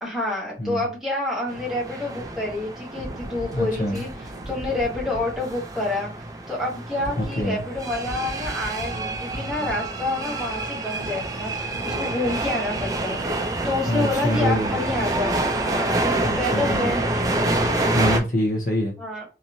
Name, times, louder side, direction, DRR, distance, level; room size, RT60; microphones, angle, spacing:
voice 1, 0.0-4.1 4.5-13.2 13.6-17.0 19.0-19.2, left 2 dB, ahead, 1.2 m, -28 dB
sound 1, 1.5-18.2, right 2 dB, 20° right, 0.4 m, -28 dB
sound 2, 2.9-10.4 10.7-14.4 14.7-14.9, right 1 dB, 55° right, 0.8 m, -39 dB
voice 2, 3.5-4.0 7.2-7.6 9.4-9.7 13.9-14.8 16.2-16.9 17.9-19.0, equal, 45° left, 0.7 m, -25 dB
2.9 x 2.5 x 2.7 m
head